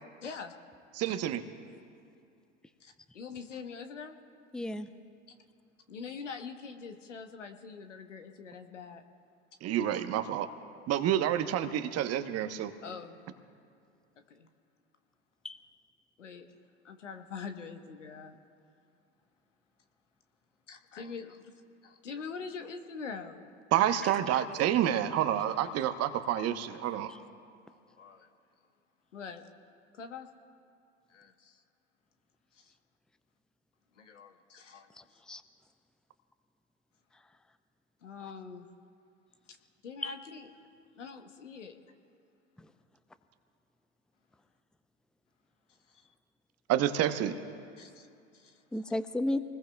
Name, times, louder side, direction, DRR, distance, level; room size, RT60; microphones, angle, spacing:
voice 1, 0.2-0.5 1.0-1.2 2.8-4.2 5.9-9.0 12.8-13.2 14.3-14.5 16.2-16.5 16.8-18.3 20.7-21.5 21.8-23.4 26.9-27.1 28.0-28.3 29.1-29.4 29.9-30.3 31.1-31.6 32.5-32.7 34.0-35.2 38.0-38.7 39.5-39.6 39.8-40.5 40.9-41.8 45.9-46.1 47.8-48.1 48.3-48.6, left 5 dB, 85° left, 6 dB, 1.2 m, -44 dB
voice 2, 1.0-1.4 9.6-10.5 10.9-12.7 23.7-27.1 46.7-47.3, right 11 dB, 45° right, 10 dB, 1.0 m, -28 dB
voice 3, 4.5-4.9 15.4-15.6 24.0-24.4 27.1-27.2 34.9-35.4 40.0-40.1 42.6-42.7 48.7-49.4, left 1 dB, ahead, 11 dB, 0.6 m, -34 dB
27.0 x 20.0 x 2.3 m, 2.5 s
hypercardioid pair, 75°, 36 cm